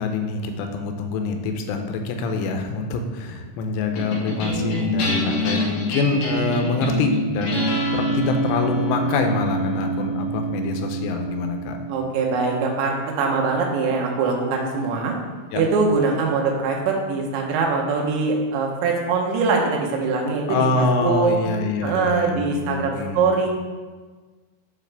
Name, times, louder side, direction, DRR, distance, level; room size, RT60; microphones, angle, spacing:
voice 1, 0.0-7.7 7.9-11.8 15.5-15.6 20.5-23.3, left 3 dB, 90° left, 5 dB, 3.1 m, -25 dB
sound 1, 4.0-14.6, equal, 65° left, 2.6 m, -26 dB
voice 2, 11.9-15.1 15.5-21.3 21.8-23.5, right 4 dB, 75° right, 0 dB, 3.1 m, -22 dB
7.4 x 4.8 x 3.3 m, 1.4 s
omnidirectional pair, 5.5 m